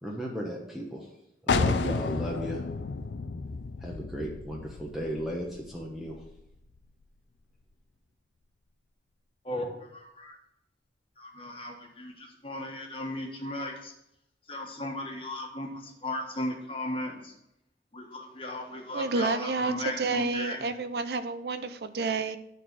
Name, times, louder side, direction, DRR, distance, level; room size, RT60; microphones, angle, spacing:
voice 1, 0.0-1.1 1.4-2.6 3.8-6.2, equal, ahead, -2 dB, 0.9 m, -35 dB
sound 1, 1.5-7.0, left 4 dB, 85° left, 0.5 m, -32 dB
voice 2, 9.4-10.4 11.2-13.9 14.5-17.3 17.9-20.6, left 1 dB, 30° left, 1 dB, 1.4 m, -36 dB
voice 3, 18.9-22.4, right 3 dB, 65° right, 10 dB, 0.5 m, -30 dB
9.8 x 4.0 x 6.1 m, 0.82 s
head